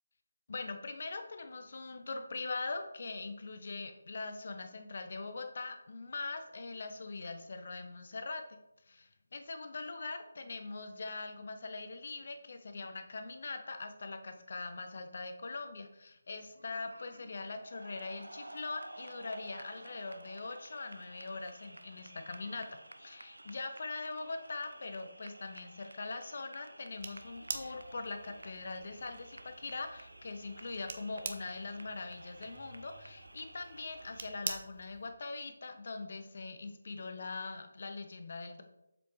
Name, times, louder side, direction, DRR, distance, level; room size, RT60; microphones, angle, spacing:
voice 1, 0.5-8.6 8.9-22.7 23.0-38.6, left 3 dB, 50° left, 6 dB, 1.0 m, -42 dB
sound 1, 16.3-34.3, right 1 dB, 75° right, 0.6 m, -53 dB
sound 2, 27.0-35.1, right 4 dB, 40° right, 0.8 m, -46 dB
sound 3, 32.4-33.7, equal, 5° right, 2.6 m, -62 dB
7.5 x 6.9 x 3.2 m, 0.87 s
figure-of-eight pair, 155°, 0 cm